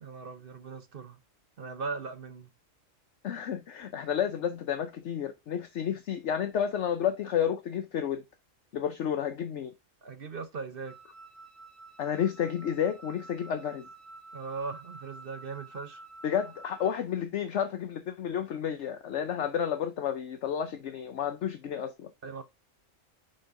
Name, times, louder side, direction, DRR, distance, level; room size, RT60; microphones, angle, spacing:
voice 1, 0.0-1.2 1.6-2.5 10.0-11.0 14.3-16.0 22.2-22.4, right 4 dB, 50° right, 0.9 m, -39 dB
voice 2, 3.2-8.2 8.7-9.7 12.0-13.9 16.2-22.1, left 9 dB, 65° left, 1.0 m, -31 dB
Wind instrument woodwind instrument, 10.8-17.1, right 3 dB, 70° right, 4.4 m, -50 dB
10.0 x 4.4 x 2.5 m
omnidirectional pair, 1.4 m